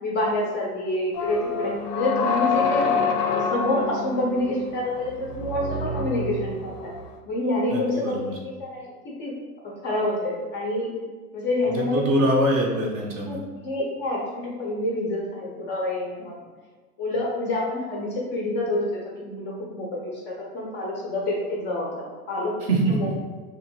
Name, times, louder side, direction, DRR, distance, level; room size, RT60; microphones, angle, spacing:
voice 1, 0.0-3.0 3.3-6.9 7.3-9.3 9.8-10.9 11.3-12.0 13.3-16.3 17.0-22.5 22.9-23.1, left 1 dB, 25° left, -3 dB, 0.4 m, -27 dB
sound 1, 1.1-7.1, left 4 dB, 75° left, 0.5 m, -27 dB
voice 2, 7.7-8.3 11.7-13.4 22.7-23.1, right 1 dB, 30° right, -1 dB, 0.5 m, -23 dB
3.0 x 2.6 x 2.6 m, 1.4 s
hypercardioid pair, 110°, 47 cm